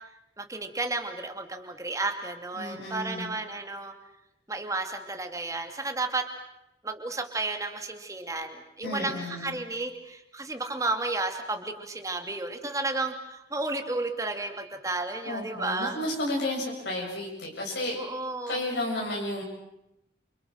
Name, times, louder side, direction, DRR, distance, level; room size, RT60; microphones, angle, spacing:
voice 1, 0.4-3.9 4.5-6.3 6.8-15.9 18.0-18.6, right 2 dB, 15° right, 5 dB, 2.6 m, -32 dB
voice 2, 2.5-3.3 8.8-9.6 15.2-18.0 18.5-19.4, left 1 dB, 70° left, -2 dB, 7.4 m, -32 dB
29.0 x 29.0 x 6.5 m, 0.85 s
head